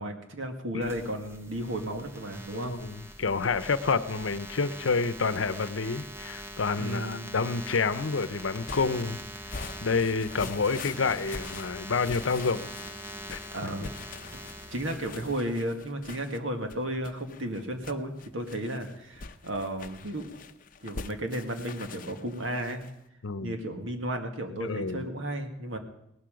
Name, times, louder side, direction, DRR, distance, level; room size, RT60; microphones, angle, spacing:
voice 1, 0.0-2.7 6.8-7.3 10.4-10.5 13.5-13.9 14.3-14.4 14.7-20.3 20.8-22.8 23.4-25.8, right 1 dB, 90° right, 5 dB, 1.9 m, -34 dB
sound 1, 0.8-15.3, right 1 dB, 15° right, 1.0 m, -43 dB
voice 2, 2.5-9.2 9.8-12.7 13.3-13.4 23.2-23.6 24.5-25.0, left 4 dB, 90° left, 14 dB, 0.7 m, -29 dB
Musical instrument, 8.5-15.5, left 2 dB, 15° left, 0.9 m, -52 dB
sound 2, 8.7-23.0, left 4 dB, 45° left, 0.7 m, -44 dB
17.5 x 12.5 x 5.2 m, 0.80 s
head